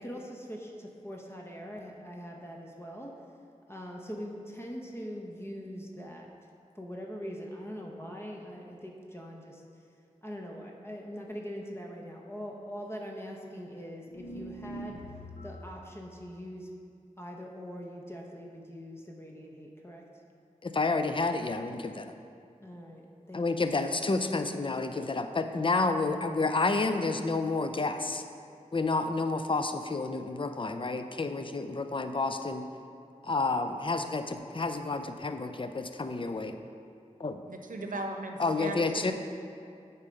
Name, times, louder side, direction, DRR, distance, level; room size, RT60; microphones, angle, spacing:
voice 1, 0.0-3.2 3.7-6.3 6.7-9.8 10.2-15.0 15.4-16.7 17.2-20.0 22.6-23.7, equal, 20° left, -1 dB, 0.9 m, -42 dB
sound 1, 14.1-15.9, right 1 dB, 85° left, 0.7 m, -43 dB
voice 2, 20.6-22.1 23.3-28.2 28.7-32.7 33.2-36.6 37.2-37.4 38.4-39.1, left 3 dB, 40° left, 8 dB, 0.5 m, -30 dB
voice 3, 37.5-39.1, right 2 dB, 85° right, 3 dB, 0.7 m, -38 dB
8.4 x 4.4 x 5.2 m, 2.4 s
cardioid pair, 45°, 13 cm